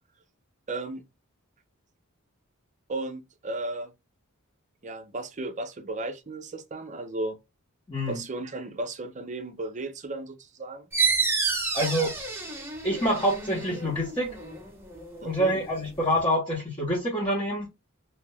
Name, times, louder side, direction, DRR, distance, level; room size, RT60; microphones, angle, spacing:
voice 1, 0.7-1.0 2.9-3.9 4.8-7.4 8.1-10.9 15.2-15.6, right 2 dB, 35° right, 0.6 m, -35 dB
voice 2, 7.9-8.2 11.7-12.1 12.8-14.3 15.2-17.7, equal, 20° left, 1.0 m, -26 dB
sound 1, 10.9-16.2, right 4 dB, 10° right, 0.9 m, -30 dB
2.8 x 2.5 x 3.2 m
head